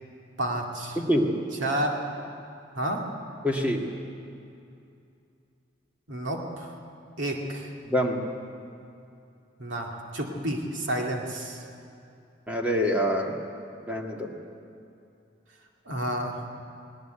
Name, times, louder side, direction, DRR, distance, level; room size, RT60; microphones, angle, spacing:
voice 1, 0.4-1.0 1.6-2.0 2.8-3.1 6.1-6.7 7.2-7.7 9.6-11.6 15.9-16.4, right 1 dB, 90° right, 0 dB, 2.4 m, -30 dB
voice 2, 1.0-1.3 3.4-3.8 7.9-8.2 12.5-13.3 13.9-14.3, equal, 10° right, 0 dB, 1.9 m, -25 dB
20.0 x 19.0 x 9.0 m, 2.6 s
head